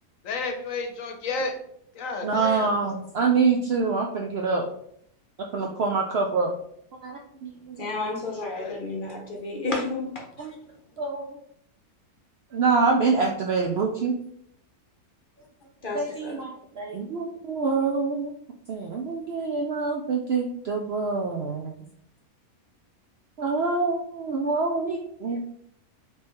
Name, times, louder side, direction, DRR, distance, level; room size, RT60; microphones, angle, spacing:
voice 1, 0.2-1.5 2.0-2.7 8.5-8.8, left 3 dB, 65° left, 4 dB, 1.0 m, -31 dB
voice 2, 2.2-4.7 5.5-6.5 7.0-7.8 10.4-10.5 11.0-11.4 12.5-14.1 15.9-18.3 18.7-21.8 23.4-25.4, right 4 dB, 70° right, 1 dB, 0.6 m, -26 dB
voice 3, 7.8-10.5 15.8-16.4, left 3 dB, 45° left, 0 dB, 0.7 m, -31 dB
4.5 x 3.2 x 3.0 m, 0.70 s
omnidirectional pair, 1.5 m